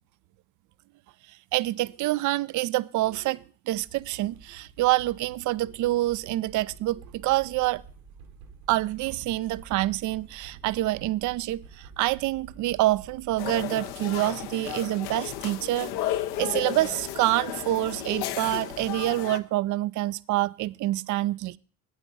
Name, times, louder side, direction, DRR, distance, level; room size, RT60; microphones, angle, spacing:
voice 1, 1.3-7.8 8.7-15.9 16.4-21.6, right 17 dB, 45° right, 0.4 m, -27 dB
sound 1, 3.7-19.2, right 5 dB, 80° right, 1.7 m, -50 dB
sound 2, 13.4-19.4, left 12 dB, 60° left, 0.8 m, -33 dB
9.0 x 8.1 x 5.4 m
figure-of-eight pair, 50°, 44 cm